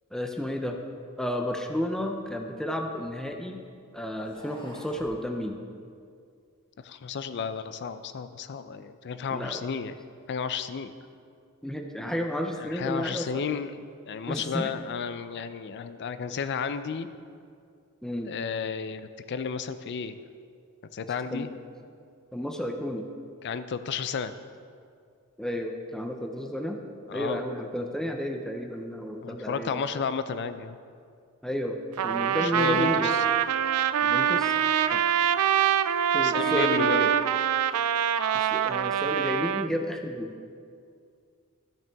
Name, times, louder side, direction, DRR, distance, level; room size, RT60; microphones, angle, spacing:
voice 1, 0.1-0.8 1.2-3.6 3.9-5.6 9.3-9.6 11.6-13.4 14.3-14.7 18.0-18.3 21.3-21.5 22.3-23.1 25.4-26.8 27.1-30.0 31.4-33.1 34.0-34.5 34.9-35.0 36.1-37.1 38.3-40.4, equal, 5° left, 3 dB, 0.5 m, -32 dB
sound 1, 1.9-3.4 4.1-5.2, equal, 20° left, 1.3 m, -50 dB
voice 2, 6.8-10.0 10.3-10.9 12.6-13.8 14.0-17.1 18.2-20.2 20.9-21.5 23.4-24.3 27.1-27.4 29.2-30.8 32.4-32.9 36.2-37.0, left 6 dB, 55° left, 12 dB, 0.4 m, -32 dB
Trumpet, 32.0-39.7, right 9 dB, 80° right, 0.3 m, -24 dB
13.5 x 5.8 x 3.5 m, 2.3 s
head